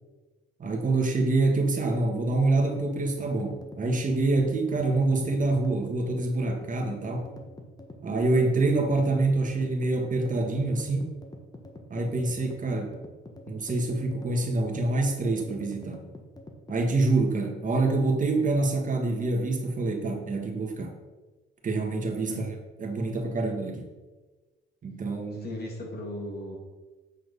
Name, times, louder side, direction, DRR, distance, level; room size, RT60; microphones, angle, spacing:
voice 1, 0.6-7.3 8.0-11.1 11.9-12.9 13.5-16.0 16.7-20.9 21.6-22.5 22.8-23.9 24.8-25.5, right 2 dB, 40° right, 2 dB, 1.5 m, -26 dB
sound 1, 2.7-17.0, left 2 dB, 20° left, 1.3 m, -45 dB
voice 2, 25.4-26.6, left 1 dB, 55° left, 0 dB, 2.3 m, -36 dB
8.2 x 4.4 x 5.3 m, 1.2 s
cardioid pair, 90°, 20 cm